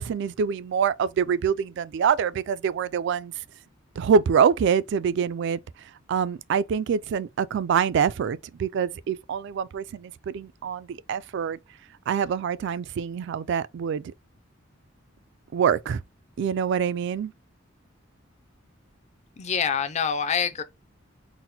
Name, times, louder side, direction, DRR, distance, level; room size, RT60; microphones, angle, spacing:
voice 1, 0.0-3.3 4.0-5.6 6.1-11.6 12.1-14.1 15.5-16.0 16.4-17.3, right 7 dB, 60° right, 0.3 m, -25 dB
voice 2, 19.4-20.6, left 7 dB, 35° left, 0.5 m, -26 dB
4.0 x 2.1 x 4.1 m
head